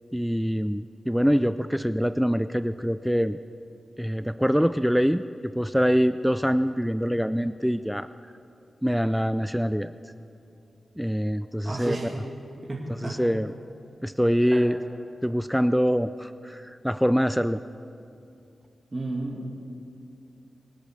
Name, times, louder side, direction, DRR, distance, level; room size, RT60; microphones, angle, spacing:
voice 1, 0.1-3.4 4.0-8.1 8.8-9.9 11.0-12.0 13.0-13.5 14.0-14.8 15.2-17.6, equal, ahead, 12 dB, 0.4 m, -24 dB
voice 2, 11.6-12.1 12.6-13.2 14.5-14.6 18.9-19.5, right 2 dB, 35° right, -4 dB, 2.6 m, -32 dB
25.5 x 8.5 x 6.4 m, 2.6 s
cardioid pair, 60°, 0 cm